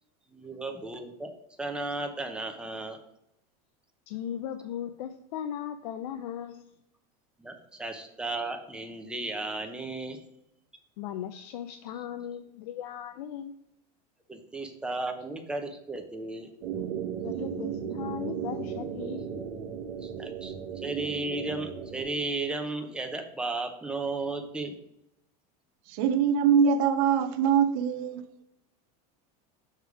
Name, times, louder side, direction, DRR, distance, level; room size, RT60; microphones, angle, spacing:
voice 1, 0.3-1.3 1.6-3.0 7.4-10.2 14.3-16.5 20.0-24.7, right 2 dB, 5° right, 0.6 m, -34 dB
voice 2, 4.1-6.6 11.0-13.6 17.2-19.3, left 9 dB, 90° left, 0.5 m, -37 dB
sound 1, 16.6-22.0, right 8 dB, 90° right, 1.0 m, -35 dB
voice 3, 25.9-28.2, right 7 dB, 65° right, 0.5 m, -23 dB
6.5 x 3.4 x 4.7 m
supercardioid pair, 145°, 20 cm